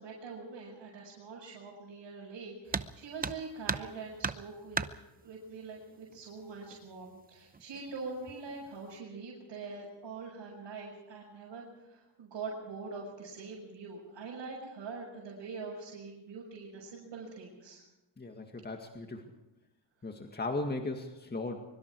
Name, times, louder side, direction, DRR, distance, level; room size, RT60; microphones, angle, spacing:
voice 1, 0.0-4.8 5.2-17.8, right 4 dB, 70° right, -5 dB, 6.5 m, -44 dB
sound 1, 2.7-2.9 3.2-3.9 4.2-4.9 6.1-6.2 6.7-6.8 7.5-7.9 8.3-8.7, right 4 dB, 20° right, 0.8 m, -34 dB
voice 2, 18.2-19.3 20.0-21.7, left 2 dB, 20° left, 3 dB, 2.1 m, -37 dB
24.0 x 24.0 x 4.8 m, 0.98 s
cardioid pair, 100°, 44 cm